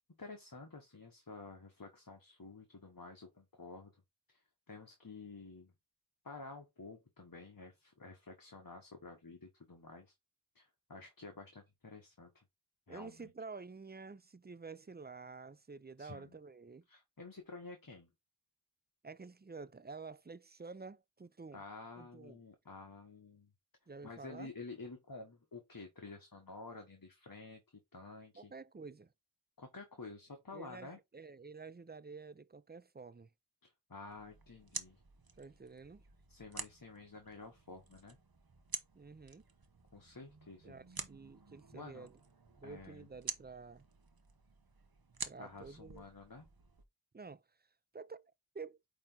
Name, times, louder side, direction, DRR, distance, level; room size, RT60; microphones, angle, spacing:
voice 1, 0.2-3.9 4.3-4.4 4.7-5.7 6.2-10.1 10.5-12.4 12.9-13.3 16.0-16.4 16.9-18.1 21.5-23.5 24.0-27.6 27.9-28.5 29.6-31.0 33.6-35.0 36.3-38.2 39.9-40.8 41.7-42.1 42.6-43.1 45.4-46.5, left 3 dB, 50° left, 1.2 m, -51 dB
voice 2, 12.9-16.8 19.0-21.6 22.0-22.4 23.9-24.5 28.3-29.1 30.5-33.3 35.4-36.0 38.9-39.4 40.6-42.2 42.6-43.9 45.3-46.0 47.1-47.4 47.9-48.8, right 4 dB, 25° right, 0.4 m, -50 dB
sound 1, 34.1-46.8, right 5 dB, 55° right, 1.0 m, -49 dB
8.5 x 3.0 x 3.8 m
wide cardioid pair, 40°, 44 cm